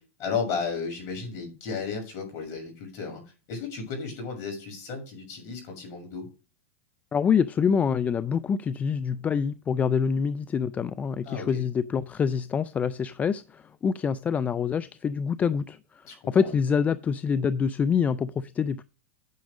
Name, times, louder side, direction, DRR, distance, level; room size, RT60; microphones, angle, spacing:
voice 1, 0.2-3.2 3.5-6.3 11.2-11.6 16.1-16.5, left 5 dB, 45° left, 6.5 m, -34 dB
voice 2, 7.1-15.8 16.3-18.8, left 6 dB, 20° left, 0.4 m, -26 dB
9.5 x 6.2 x 5.0 m
hypercardioid pair, 115°, 7 cm